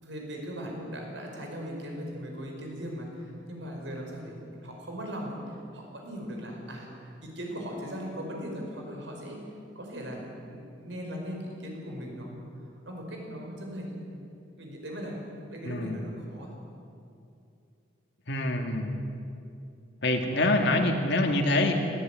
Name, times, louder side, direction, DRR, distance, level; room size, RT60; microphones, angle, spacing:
voice 1, 0.0-9.4 9.8-12.4 12.9-14.0 14.6-15.2 15.5-16.6, equal, 75° right, 0 dB, 5.4 m, -39 dB
voice 2, 15.6-16.0 18.3-19.0 20.0-21.7, left 2 dB, 65° left, 4 dB, 2.3 m, -25 dB
20.0 x 15.5 x 9.3 m, 2.6 s
head